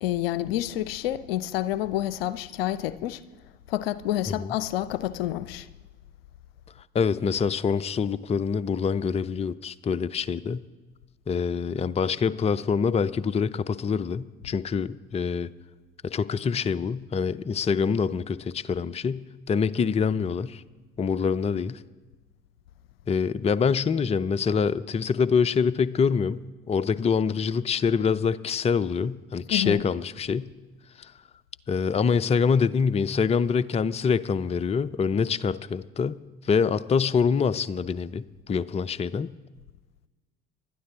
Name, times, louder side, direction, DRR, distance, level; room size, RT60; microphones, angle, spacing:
voice 1, 0.0-3.2 3.7-5.7 29.5-29.8, left 13 dB, 70° left, 0.6 m, -28 dB
voice 2, 6.9-10.6 11.3-15.5 16.0-20.6 21.0-21.8 23.1-30.5 31.0-31.1 31.7-36.2 36.4-39.3, left 6 dB, 20° left, 0.6 m, -25 dB
30.0 x 12.0 x 3.7 m
figure-of-eight pair, 60°, 30 cm